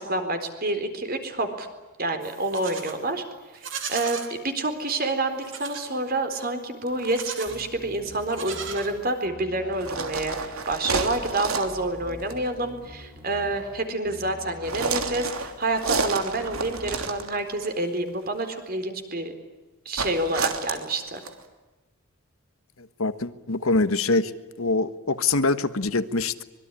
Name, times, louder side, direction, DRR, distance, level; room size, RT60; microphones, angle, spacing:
voice 1, 0.0-1.7 2.0-3.2 3.9-19.3 19.9-21.2, right 2 dB, 45° right, 4.1 m, -28 dB
Livestock farm animals working animals, 2.2-3.0 3.5-4.3 5.4-5.9 7.0-7.7 8.2-9.3, right 7 dB, 60° right, 3.8 m, -37 dB
sound 1, 6.9-7.2 9.7-11.8 12.2-12.4 14.6-17.7 20.0-21.4, right 4 dB, 80° right, 3.1 m, -30 dB
sound 2, 7.5-8.9 9.2-10.5 11.0-11.3 11.6-13.7 14.0-15.3 15.8-16.1 16.4-17.0, left 1 dB, 20° right, 4.6 m, -44 dB
voice 2, 23.0-24.3 24.6-26.4, left 3 dB, 75° left, 1.4 m, -24 dB
25.0 x 22.5 x 10.0 m
head